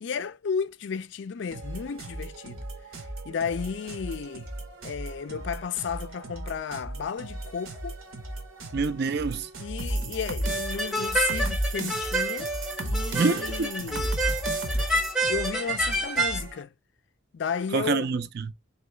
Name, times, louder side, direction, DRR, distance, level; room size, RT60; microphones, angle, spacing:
voice 1, 0.0-2.7 3.0-4.5 4.8-8.0 9.6-12.5 12.8-14.2 15.3-16.7 17.3-18.1, left 6 dB, 60° left, 0.3 m, -33 dB
sound 1, 1.5-16.6, right 1 dB, 80° right, 1.1 m, -39 dB
voice 2, 8.7-9.5 13.1-13.7 17.7-18.5, right 4 dB, 50° right, 0.4 m, -26 dB
sound 2, 9.8-15.1, right 1 dB, 65° right, 0.9 m, -32 dB
sound 3, 10.4-16.4, right 2 dB, ahead, 0.6 m, -28 dB
3.8 x 3.1 x 3.1 m
head